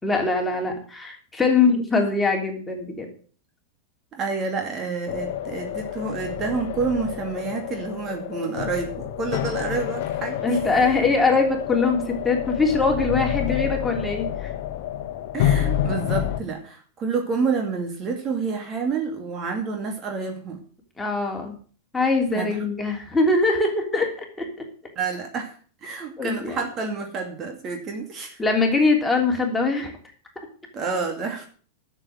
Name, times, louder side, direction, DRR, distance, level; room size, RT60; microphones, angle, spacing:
voice 1, 0.0-3.1 10.4-14.5 21.0-21.5 21.9-24.5 26.2-26.6 28.4-29.9, left 3 dB, 10° left, 1 dB, 3.4 m, -22 dB
voice 2, 4.1-10.6 15.3-20.6 22.3-22.7 25.0-25.6 25.8-28.4 30.7-31.5, right 4 dB, 30° right, 3 dB, 2.5 m, -29 dB
sound 1, 5.1-16.4, left 11 dB, 50° left, 1.2 m, -28 dB
12.5 x 7.2 x 7.6 m, 0.42 s
figure-of-eight pair, 90°, 0 cm